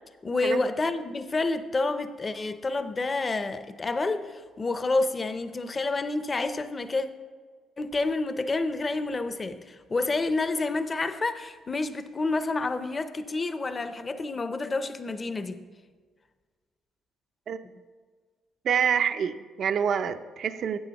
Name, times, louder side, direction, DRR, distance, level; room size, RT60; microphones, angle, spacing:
voice 1, 0.2-7.1 7.8-15.6, left 3 dB, 30° left, 11 dB, 0.5 m, -29 dB
voice 2, 18.6-20.8, right 7 dB, 60° right, 11 dB, 0.4 m, -26 dB
12.0 x 8.3 x 2.9 m, 1.5 s
cardioid pair, 105°, 0 cm